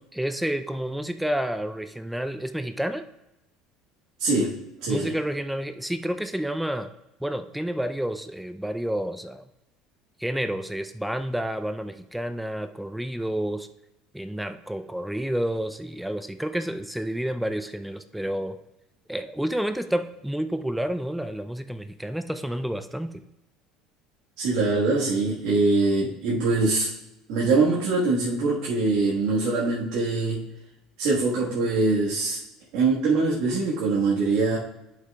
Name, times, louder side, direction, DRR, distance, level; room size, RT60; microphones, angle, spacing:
voice 1, 0.1-3.0 4.9-6.9 7.2-9.5 10.2-13.7 14.1-18.6 19.1-23.2, right 1 dB, 5° right, 9 dB, 0.5 m, -30 dB
voice 2, 4.2-5.1 24.4-26.9 27.3-30.4 31.0-32.4 32.7-34.6, right 3 dB, 65° right, -6 dB, 1.5 m, -23 dB
11.0 x 5.8 x 2.3 m, 0.91 s
hypercardioid pair, 75°, 0 cm